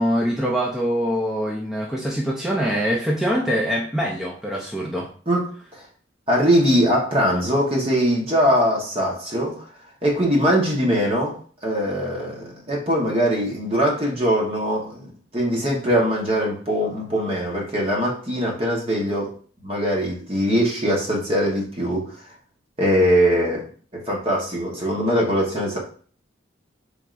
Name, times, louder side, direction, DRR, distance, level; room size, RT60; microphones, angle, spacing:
voice 1, 0.0-5.1, equal, 5° right, -4 dB, 0.5 m, -24 dB
voice 2, 6.3-9.6 10.0-11.3 11.6-19.3 19.6-22.0 22.8-23.6 24.1-25.8, equal, 30° right, -2 dB, 1.1 m, -21 dB
4.6 x 3.4 x 2.5 m, 0.43 s
head